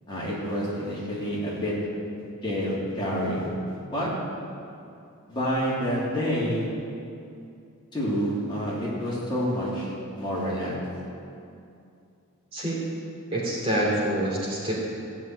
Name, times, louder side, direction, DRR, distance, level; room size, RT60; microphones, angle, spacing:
voice 1, 0.1-1.7 2.4-4.1 5.3-6.6 7.9-10.7, equal, 20° left, -7 dB, 3.0 m, -28 dB
voice 2, 12.5-12.8 13.3-14.7, right 1 dB, 25° right, -5 dB, 2.7 m, -26 dB
15.5 x 6.3 x 9.1 m, 2.5 s
head